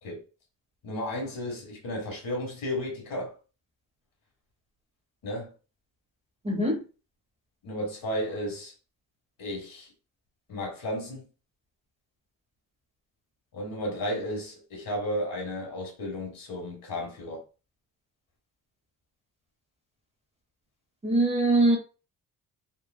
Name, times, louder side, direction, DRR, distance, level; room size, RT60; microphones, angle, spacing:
voice 1, 0.8-3.3 5.2-5.5 7.6-8.7 9.4-9.9 10.5-11.2 13.5-17.4, equal, 70° left, 1.3 m, -33 dB
voice 2, 6.4-6.8 21.0-21.8, right 2 dB, 20° right, 0.6 m, -22 dB
3.1 x 2.1 x 2.2 m
cardioid pair, 130°, 36 cm